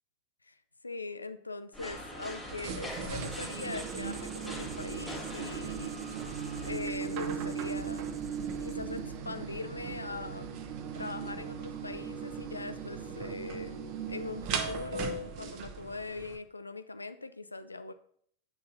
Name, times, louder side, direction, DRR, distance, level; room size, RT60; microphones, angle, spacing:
voice 1, 0.8-6.0 6.6-8.1 8.6-10.5 10.9-13.8 14.1-17.9, left 3 dB, 80° left, 12 dB, 0.5 m, -41 dB
sound 1, 1.7-6.8, equal, 10° left, 2.2 m, -43 dB
sound 2, 2.4-16.4, right 6 dB, 40° right, 1.0 m, -38 dB
Writing, 3.1-9.1, right 4 dB, 15° right, 0.7 m, -52 dB
8.2 x 6.5 x 4.0 m, 0.63 s
figure-of-eight pair, 90°, 0 cm